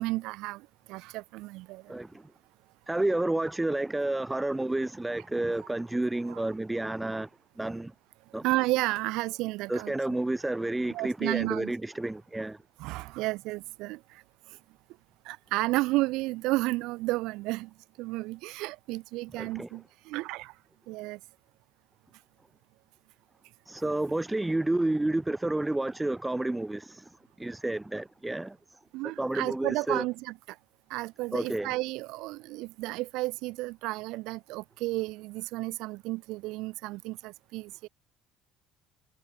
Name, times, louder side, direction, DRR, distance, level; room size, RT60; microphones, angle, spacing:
voice 1, 0.0-2.0 6.3-6.4 8.4-9.9 10.9-11.7 12.8-14.2 15.3-20.5 20.9-21.2 28.9-30.6 30.9-37.9, right 21 dB, 75° right, 0.3 m, -32 dB
voice 2, 1.9-2.3 2.9-7.3 7.6-7.9 8.3-8.5 9.7-12.6 19.4-19.7 23.7-28.8 29.2-30.0 31.3-31.7, right 2 dB, 10° right, 0.5 m, -30 dB
hypercardioid pair, 70°, 0 cm